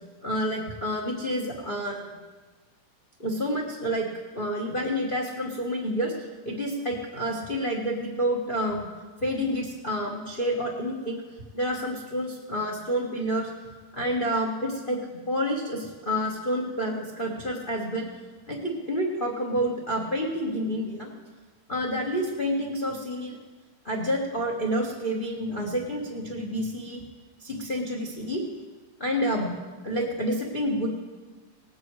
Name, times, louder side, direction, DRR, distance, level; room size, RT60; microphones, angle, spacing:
voice 1, 0.2-2.2 3.2-4.1 4.3-8.9 9.2-11.2 11.5-13.5 13.9-15.0 15.3-18.1 18.5-21.1 21.7-23.4 23.8-27.0 27.4-28.4 29.0-29.5 29.8-30.9, equal, 80° left, -1 dB, 0.4 m, -29 dB
19.0 x 8.7 x 4.7 m, 1.3 s
omnidirectional pair, 3.7 m